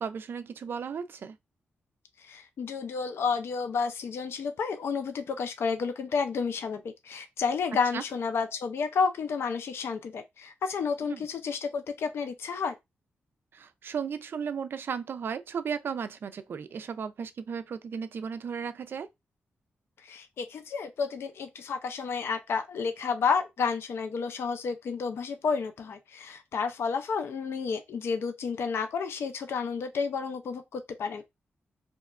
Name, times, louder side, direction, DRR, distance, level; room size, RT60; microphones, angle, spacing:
voice 1, 0.0-1.4 7.9-8.0 11.1-11.2 13.5-19.1, right 6 dB, 55° right, 0.3 m, -35 dB
voice 2, 2.2-12.7 20.0-31.2, left 5 dB, 70° left, 0.4 m, -31 dB
2.8 x 2.3 x 2.3 m
wide cardioid pair, 110°, 4 cm